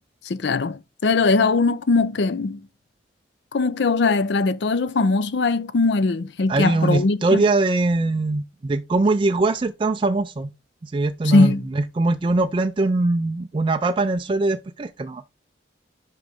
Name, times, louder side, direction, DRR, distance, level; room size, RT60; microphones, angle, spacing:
voice 1, 0.2-2.7 3.5-7.4 11.2-11.7, left 3 dB, 65° left, 0.5 m, -20 dB
voice 2, 6.5-10.5 10.8-15.2, right 2 dB, 25° right, 0.3 m, -22 dB
6.6 x 5.1 x 3.5 m
head